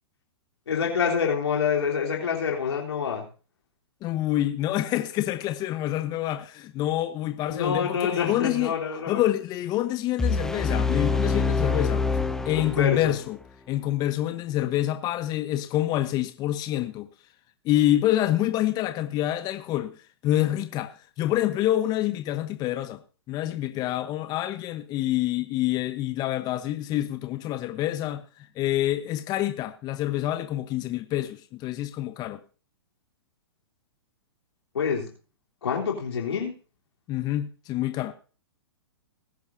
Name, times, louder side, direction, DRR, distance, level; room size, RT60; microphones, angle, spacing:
voice 1, 0.7-3.3 7.5-9.2 12.6-13.2 34.7-35.1 35.6-36.5, left 6 dB, 80° left, 3.5 m, -27 dB
voice 2, 4.0-8.7 9.1-12.0 12.4-13.4 13.7-17.1 17.6-19.9 20.2-20.9 21.2-23.0 23.3-28.2 28.5-32.4 37.1-38.1, left 13 dB, 30° left, 1.0 m, -27 dB
sound 1, 10.2-13.2, left 4 dB, 5° left, 0.6 m, -25 dB
20.0 x 10.5 x 2.7 m
hypercardioid pair, 125°, 14 cm